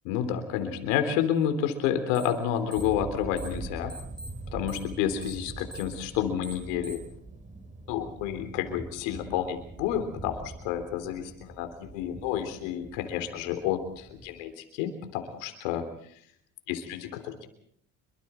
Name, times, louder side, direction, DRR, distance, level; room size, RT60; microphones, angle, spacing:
voice 1, 0.1-3.9 4.5-7.0 7.9-15.8 16.7-17.5, left 9 dB, 90° left, 7 dB, 3.4 m, -30 dB
sound 1, 2.1-2.4 2.7-3.6 3.9-7.1, right 2 dB, ahead, 4.6 m, -44 dB
sound 2, 2.7-14.4, right 3 dB, 20° right, 3.7 m, -43 dB
26.5 x 24.0 x 4.5 m, 0.64 s
supercardioid pair, 85°, 37 cm